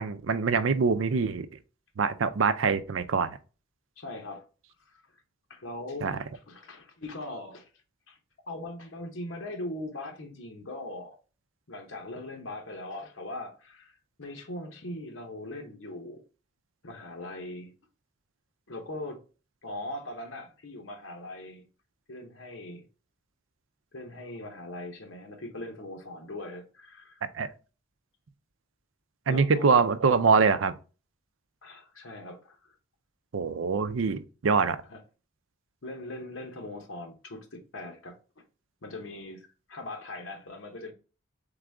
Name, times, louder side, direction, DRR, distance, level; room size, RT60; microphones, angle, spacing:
voice 1, 0.0-1.5 2.0-3.3 6.0-6.2 27.3-27.5 29.3-30.7 33.3-34.8, right 5 dB, 85° right, 0.5 m, -24 dB
voice 2, 4.0-4.4 4.8-5.0 5.5-6.1 6.5-7.7 8.1-8.2 8.5-11.2 11.7-16.2 16.8-17.7 18.7-19.2 19.6-21.7 22.1-22.9 23.9-27.2 29.3-29.9 31.6-32.8 34.9-35.0 35.8-38.4 38.8-40.9, left 1 dB, 90° left, 1.0 m, -40 dB
3.9 x 3.7 x 3.4 m
head